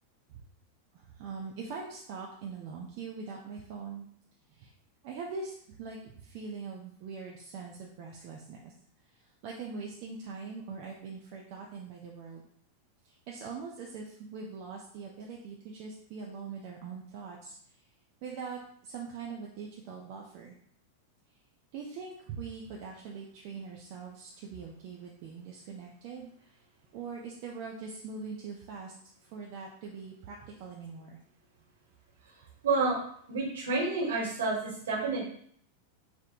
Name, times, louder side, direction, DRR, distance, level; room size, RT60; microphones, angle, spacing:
voice 1, 0.9-4.1 4.5-4.7 5.0-8.7 9.0-12.4 13.0-17.8 18.2-20.5 21.7-26.6 26.9-28.9 29.2-31.2, right 5 dB, 45° right, -1 dB, 0.3 m, -42 dB
voice 2, 32.6-33.0 33.3-35.2, right 3 dB, 65° right, -4 dB, 0.9 m, -29 dB
2.9 x 2.0 x 2.4 m, 0.63 s
figure-of-eight pair, 90°, 0 cm